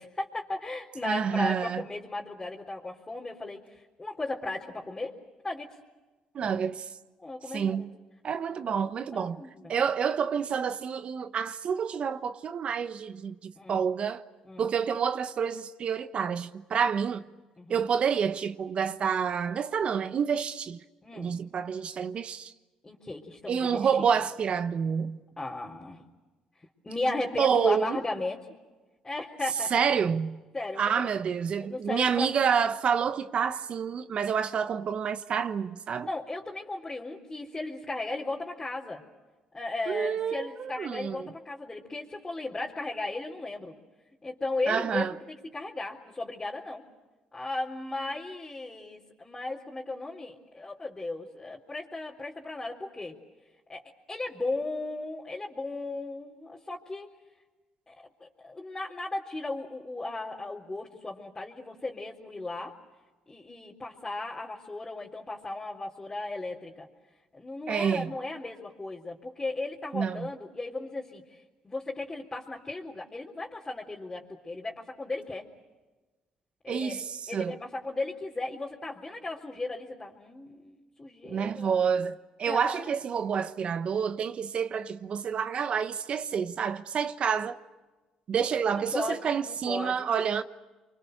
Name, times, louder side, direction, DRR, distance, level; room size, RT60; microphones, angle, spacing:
voice 1, 0.0-5.1 5.4-5.7 7.2-7.9 9.1-9.8 13.6-13.8 14.5-14.7 17.6-17.8 21.0-21.3 22.8-24.1 25.4-26.0 26.8-28.4 29.0-29.7 30.5-31.1 31.6-32.5 36.1-39.0 39.5-43.8 44.2-46.8 47.3-53.2 53.7-57.1 57.9-58.0 58.2-62.7 63.3-66.9 67.3-75.5 76.6-77.0 77.3-81.8 82.5-82.8 88.9-90.1, left 2 dB, 20° left, 3.7 m, -36 dB
voice 2, 1.0-1.8 6.3-6.9 7.5-7.9 8.2-9.4 9.7-14.2 14.6-17.2 17.7-20.8 21.2-22.5 23.5-25.2 27.4-28.0 29.7-30.4 30.8-36.1 39.9-41.3 44.7-45.1 67.7-68.1 69.9-70.3 76.7-77.6 81.3-87.6 88.3-90.4, right 7 dB, 50° right, 1.1 m, -28 dB
29.5 x 24.0 x 6.6 m
supercardioid pair, 70°, 2 cm